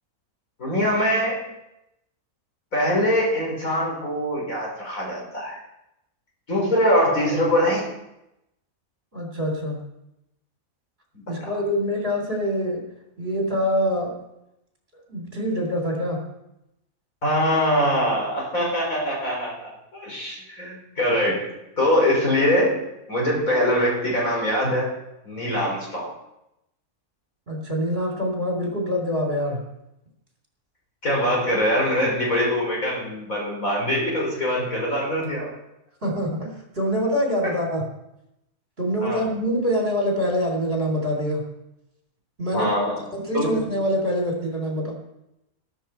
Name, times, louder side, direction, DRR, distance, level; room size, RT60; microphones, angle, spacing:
voice 1, 0.6-1.4 2.7-5.6 6.5-7.9 11.1-11.6 17.2-22.8 23.1-24.9 25.2-26.1 31.0-35.5 39.0-39.2 42.5-43.0 43.3-43.6, equal, 65° left, -2 dB, 4.9 m, -23 dB
voice 2, 9.1-9.8 11.3-12.8 13.2-14.1 15.1-16.2 27.5-29.6 36.0-37.8 38.8-41.5 42.4-42.7 43.1-44.9, equal, 40° right, 0 dB, 3.6 m, -25 dB
13.5 x 13.0 x 4.5 m, 0.88 s
omnidirectional pair, 1.5 m